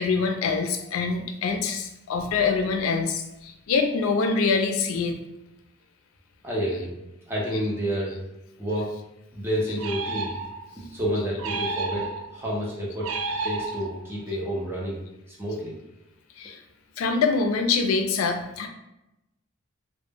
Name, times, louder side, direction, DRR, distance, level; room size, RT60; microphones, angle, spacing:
voice 1, 0.0-5.2 7.5-7.6 16.4-16.6 17.0-18.7, left 4 dB, 75° left, 6 dB, 0.3 m, -25 dB
voice 2, 6.4-6.9 7.3-8.2 8.6-9.0 9.3-10.3 10.9-13.1 13.4-15.0 15.4-15.7, equal, 10° right, -5 dB, 0.5 m, -29 dB
sound 1, 9.8-10.8 11.4-12.4 13.0-14.2, right 3 dB, 75° right, 0.3 m, -31 dB
2.1 x 2.0 x 3.3 m, 0.90 s
head